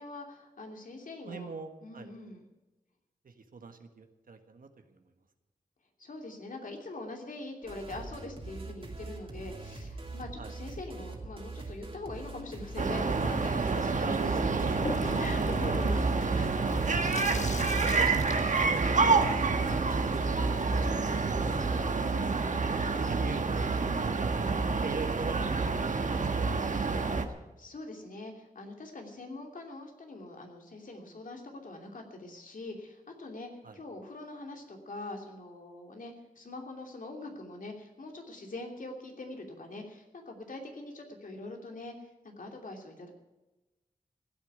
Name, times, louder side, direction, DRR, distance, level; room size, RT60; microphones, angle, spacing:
voice 1, 0.0-1.5 1.8-2.4 6.0-17.3 27.6-41.9 42.2-43.1, left 2 dB, 75° left, 3 dB, 2.9 m, -43 dB
voice 2, 1.2-2.1 3.2-4.7 10.4-10.5 14.0-14.9 17.5-19.5 19.7-21.9 22.6-24.4 24.8-25.8 33.6-33.8, right 4 dB, 85° right, 6 dB, 1.5 m, -43 dB
sound 1, 7.6-21.7, right 2 dB, 40° right, 2.6 m, -43 dB
sound 2, 12.8-27.3, right 4 dB, 65° right, 1.3 m, -28 dB
Water tap faucet / Sink (filling or washing), 14.8-20.0, left 3 dB, 60° left, 1.4 m, -41 dB
15.5 x 8.4 x 9.5 m, 1.1 s
wide cardioid pair, 85°, 14 cm